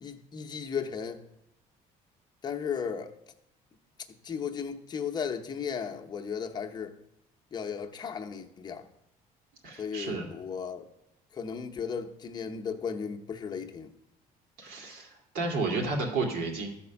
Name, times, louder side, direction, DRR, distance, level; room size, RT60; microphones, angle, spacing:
voice 1, 0.0-1.2 2.4-3.1 4.2-6.9 7.5-8.8 9.8-10.9 11.3-13.9, left 6 dB, 25° left, 0.8 m, -35 dB
voice 2, 9.6-10.3 14.6-16.7, right 3 dB, 80° right, 2.4 m, -32 dB
13.0 x 4.3 x 7.0 m
cardioid pair, 150°, 16 cm